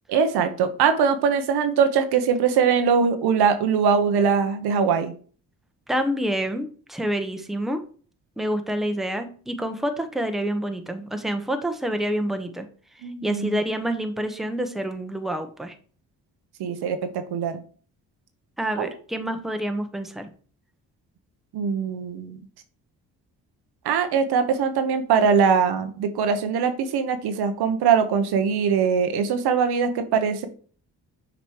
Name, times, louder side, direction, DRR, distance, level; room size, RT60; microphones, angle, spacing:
voice 1, 0.1-5.1 13.0-13.6 16.6-17.6 18.8-18.9 21.5-22.4 23.8-30.5, right 6 dB, 75° right, 9 dB, 0.8 m, -22 dB
voice 2, 5.9-7.8 8.4-12.7 13.2-15.7 18.6-20.3, right 1 dB, ahead, 7 dB, 0.9 m, -27 dB
6.7 x 3.0 x 4.7 m, 0.43 s
supercardioid pair, 60°, 39 cm